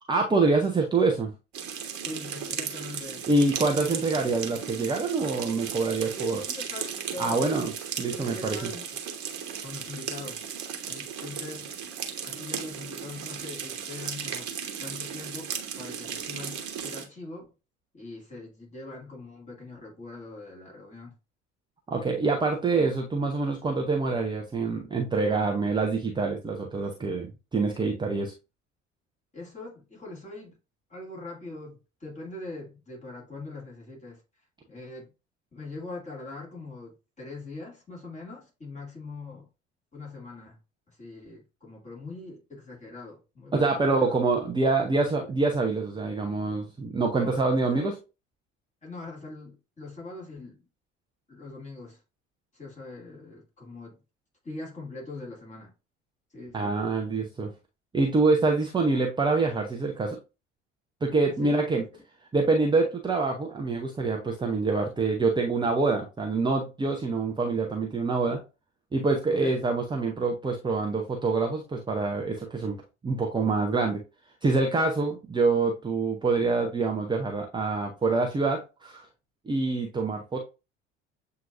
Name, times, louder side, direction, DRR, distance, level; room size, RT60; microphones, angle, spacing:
voice 1, 0.1-1.3 3.3-6.4 7.2-7.7 8.0-8.7 21.9-28.3 43.5-47.9 56.5-57.5 57.9-60.2 61.0-61.8 62.3-68.4 68.9-74.0 74.4-79.1 79.5-80.4, right 3 dB, 15° right, 0.6 m, -26 dB
sound 1, 1.5-17.0, right 7 dB, 50° right, 1.1 m, -36 dB
voice 2, 2.0-3.5 3.8-3.9 6.2-7.4 8.1-8.9 9.6-10.5 10.9-11.9 12.2-14.5 14.8-17.5 17.9-21.2 29.3-30.6 30.9-34.2 34.7-35.1 35.5-39.5 39.9-40.6 41.0-44.2 47.1-47.9 48.8-50.6 51.3-52.0 52.5-54.0 54.4-55.7 56.3-56.7 61.4-61.6 69.3-69.6, left 2 dB, 20° left, 2.3 m, -42 dB
7.5 x 2.8 x 2.5 m
figure-of-eight pair, 60°, 36 cm